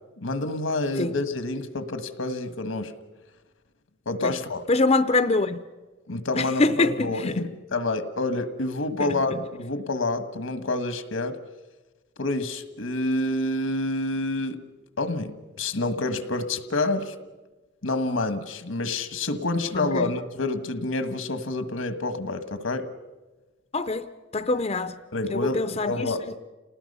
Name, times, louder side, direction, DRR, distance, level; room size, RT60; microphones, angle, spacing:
voice 1, 0.2-2.9 4.0-4.6 6.1-11.4 12.2-14.6 15.0-17.1 17.8-22.9 25.1-26.2, left 2 dB, 90° left, 1.5 m, -28 dB
voice 2, 4.7-5.6 6.4-7.4 19.7-20.1 23.7-24.1 24.3-24.9 25.3-26.1, left 3 dB, 30° left, 0.6 m, -24 dB
29.5 x 19.5 x 5.5 m
head